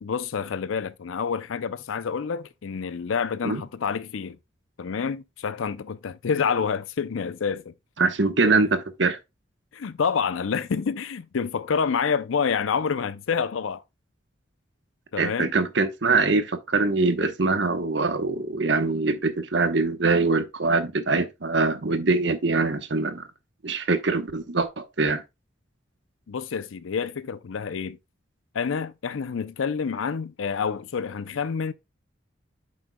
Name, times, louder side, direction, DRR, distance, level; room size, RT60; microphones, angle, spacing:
voice 1, 0.0-4.4 4.8-7.7 8.4-8.6 9.7-13.8 15.1-15.5 26.3-28.0 28.5-31.7, left 6 dB, 85° left, 0.5 m, -28 dB
voice 2, 8.0-9.2 15.2-23.3 23.6-25.2, right 3 dB, 65° right, 1.0 m, -23 dB
8.9 x 6.4 x 2.2 m
head